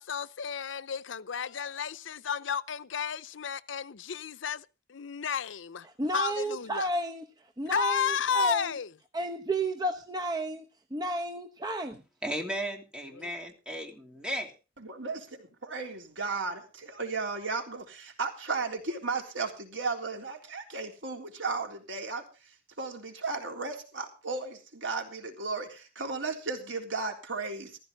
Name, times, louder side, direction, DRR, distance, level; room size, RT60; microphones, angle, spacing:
voice 1, 0.0-5.9 6.1-6.9 7.7-8.9 13.1-13.4, left 6 dB, 75° left, 0.6 m, -32 dB
voice 2, 6.0-7.3 7.6-8.8 9.1-12.0, right 1 dB, 20° right, 1.0 m, -32 dB
voice 3, 12.2-14.5, equal, 5° right, 3.0 m, -35 dB
voice 4, 14.8-27.8, right 4 dB, 80° right, 3.6 m, -35 dB
15.0 x 14.5 x 3.9 m
head